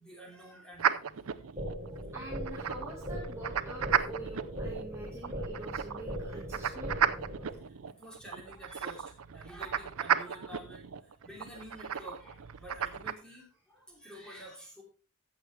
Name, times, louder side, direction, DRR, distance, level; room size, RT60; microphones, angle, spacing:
voice 1, 0.0-2.0 7.1-14.8, equal, 5° left, -1 dB, 3.0 m, -50 dB
sound 1, 0.8-13.1, right 8 dB, 90° right, 0.6 m, -34 dB
sound 2, 1.6-7.6, equal, 30° right, 2.7 m, -40 dB
voice 2, 2.1-6.9, right 2 dB, 15° right, -3 dB, 1.6 m, -45 dB
15.0 x 6.6 x 3.2 m, 0.35 s
head